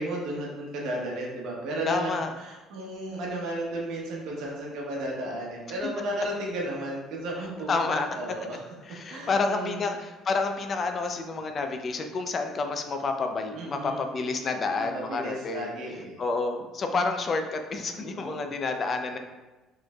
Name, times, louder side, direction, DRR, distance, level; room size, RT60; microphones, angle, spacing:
voice 1, 0.0-7.7 8.0-8.7 9.1-9.9 13.5-14.0 14.8-16.2 17.9-18.5, right 1 dB, 70° right, -2 dB, 0.9 m, -34 dB
voice 2, 1.9-2.3 7.7-8.1 8.9-15.7 16.2-19.2, left 3 dB, 45° left, 5 dB, 0.4 m, -29 dB
4.1 x 3.1 x 2.3 m, 1.1 s
supercardioid pair, 70°, 0 cm